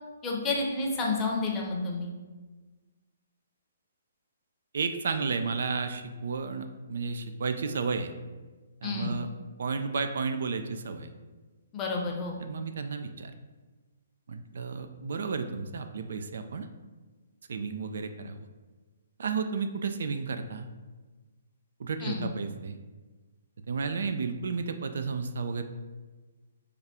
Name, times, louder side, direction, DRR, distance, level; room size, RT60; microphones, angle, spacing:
voice 1, 0.2-2.1 8.8-9.1 11.7-12.4 22.0-22.3, left 3 dB, 20° left, 0 dB, 0.7 m, -30 dB
voice 2, 4.7-8.1 8.8-9.3 9.6-11.1 12.4-13.3 14.3-16.7 17.5-18.5 19.2-20.7 21.8-22.8 23.7-25.6, right 5 dB, 70° right, 8 dB, 0.3 m, -32 dB
3.4 x 2.4 x 4.2 m, 1.3 s
hypercardioid pair, 145°, 0 cm